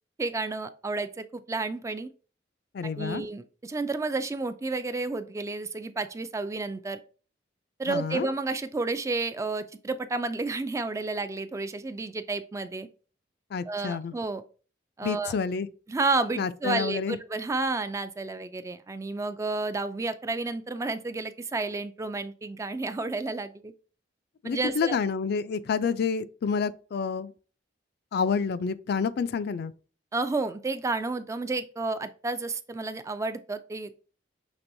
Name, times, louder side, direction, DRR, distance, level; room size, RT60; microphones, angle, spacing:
voice 1, 0.2-2.1 2.8-7.0 7.8-12.9 13.7-14.4 15.0-15.3 15.9-23.7 24.4-25.0 30.1-34.0, right 3 dB, 15° right, 0.3 m, -31 dB
voice 2, 2.7-3.3 7.9-8.3 13.5-14.1 15.0-15.7 16.4-17.2 24.4-27.3 28.1-29.7, left 5 dB, 60° left, 0.4 m, -29 dB
6.0 x 3.3 x 2.6 m
head